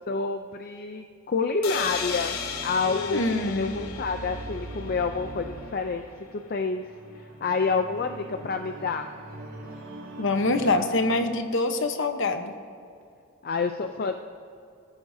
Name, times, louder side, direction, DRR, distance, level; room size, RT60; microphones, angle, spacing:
voice 1, 0.1-6.0 6.3-6.8 7.2-9.1 13.4-14.1, left 4 dB, 45° left, 6 dB, 0.5 m, -28 dB
sound 1, 1.6-5.4, left 6 dB, 80° left, 1.2 m, -35 dB
sound 2, 1.7-11.7, right 1 dB, 90° right, 3.6 m, -42 dB
voice 2, 2.9-3.7 10.2-12.5, left 2 dB, 60° left, 7 dB, 1.0 m, -25 dB
20.0 x 14.0 x 2.7 m, 2.5 s
head